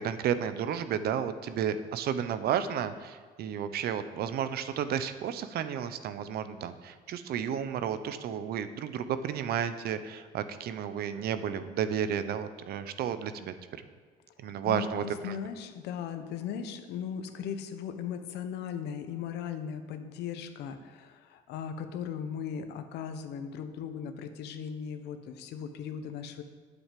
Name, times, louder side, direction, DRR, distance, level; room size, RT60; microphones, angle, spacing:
voice 1, 0.0-13.5 14.4-15.4, right 8 dB, 70° right, 12 dB, 0.8 m, -32 dB
voice 2, 14.6-26.4, left 7 dB, 85° left, 8 dB, 1.1 m, -38 dB
9.0 x 7.8 x 7.5 m, 1.5 s
cardioid pair, 110°, 17 cm